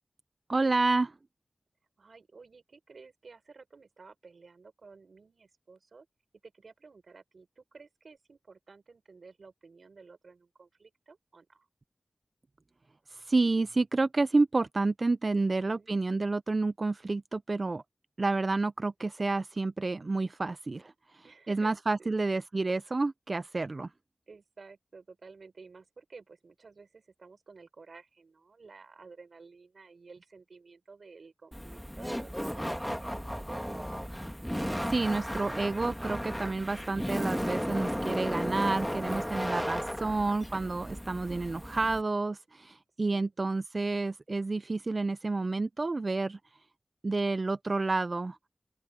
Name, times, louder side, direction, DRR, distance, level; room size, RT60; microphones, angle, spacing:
voice 1, 0.5-1.1 13.1-17.8 18.2-23.9 34.9-46.4 47.0-48.4, right 3 dB, 50° right, 0.3 m, -29 dB
voice 2, 2.0-6.1 6.4-11.7 15.3-15.9 21.2-22.2 24.3-34.0 43.0-43.3, right 4 dB, 80° right, 5.0 m, -53 dB
Laughter, 31.5-42.0, equal, ahead, 1.8 m, -35 dB
open air
wide cardioid pair, 70°, 0 cm